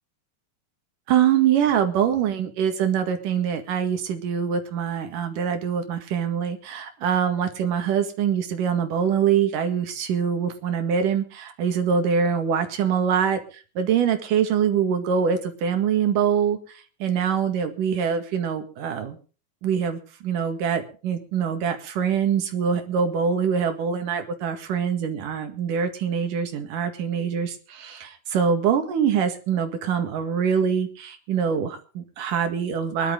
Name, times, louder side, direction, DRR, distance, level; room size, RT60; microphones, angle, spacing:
voice 1, 1.1-19.2 19.6-33.1, right 7 dB, 75° right, 7 dB, 3.5 m, -24 dB
23.0 x 11.5 x 3.8 m, 0.37 s
omnidirectional pair, 3.8 m